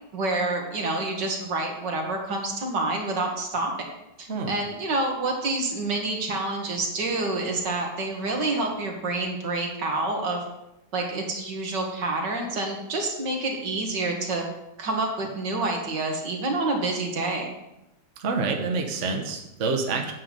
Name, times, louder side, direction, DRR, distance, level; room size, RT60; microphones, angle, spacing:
voice 1, 0.1-3.9 4.2-10.4 10.9-14.4 14.8-17.5, right 2 dB, 80° right, 1 dB, 2.4 m, -28 dB
voice 2, 18.2-20.1, right 4 dB, 45° right, 3 dB, 1.4 m, -27 dB
9.2 x 5.8 x 7.5 m, 0.89 s
omnidirectional pair, 1.9 m